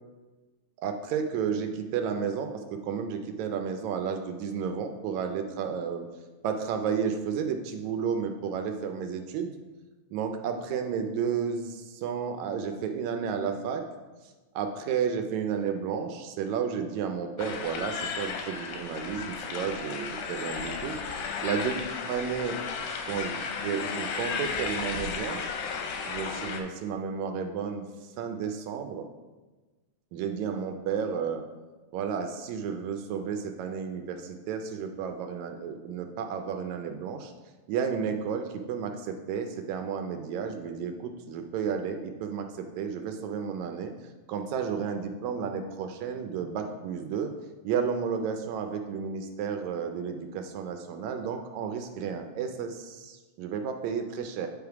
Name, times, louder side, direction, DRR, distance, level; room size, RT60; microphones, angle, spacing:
voice 1, 0.8-6.1 6.4-9.5 10.1-13.8 14.6-21.2 21.4-22.6 23.1-25.5 26.1-27.8 28.2-29.0 30.1-31.4 31.9-37.3 37.7-43.9 44.3-47.3 47.6-54.5, right 6 dB, 80° right, 5 dB, 1.8 m, -32 dB
sound 1, 17.4-26.6, left 5 dB, 90° left, 2.3 m, -34 dB
9.3 x 3.5 x 4.7 m, 1.2 s
omnidirectional pair, 3.4 m